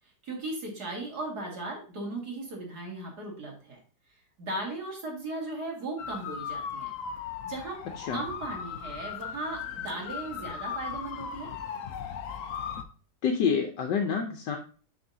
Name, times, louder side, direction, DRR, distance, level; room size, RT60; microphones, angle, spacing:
voice 1, 0.2-3.8 4.4-6.9 7.4-7.8 8.1-11.5, right 2 dB, 60° right, -1 dB, 2.8 m, -37 dB
sound 1, 6.0-12.8, left 7 dB, 60° left, 0.9 m, -37 dB
voice 2, 13.2-14.6, left 6 dB, 75° left, 4 dB, 1.4 m, -27 dB
9.7 x 5.0 x 2.7 m, 0.37 s
omnidirectional pair, 1.9 m